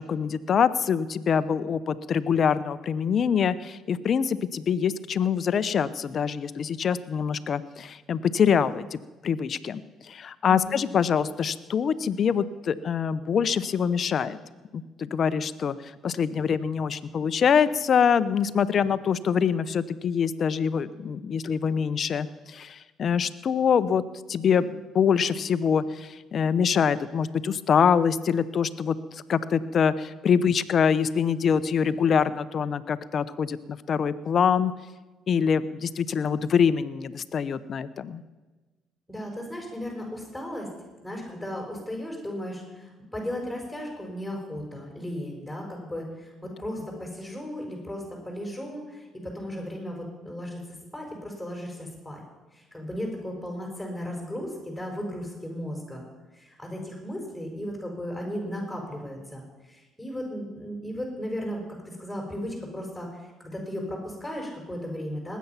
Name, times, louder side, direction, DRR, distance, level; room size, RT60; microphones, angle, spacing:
voice 1, 0.0-9.0 9.2-14.4 14.7-15.8 16.0-24.0 24.3-34.7 35.3-38.2, left 7 dB, 50° left, 15 dB, 0.8 m, -25 dB
voice 2, 10.4-11.0 39.1-40.7 41.0-50.6 50.9-52.2 52.5-56.0 56.3-65.4, equal, ahead, 0 dB, 5.3 m, -35 dB
19.5 x 9.4 x 5.8 m, 1.2 s
hypercardioid pair, 55°, 0 cm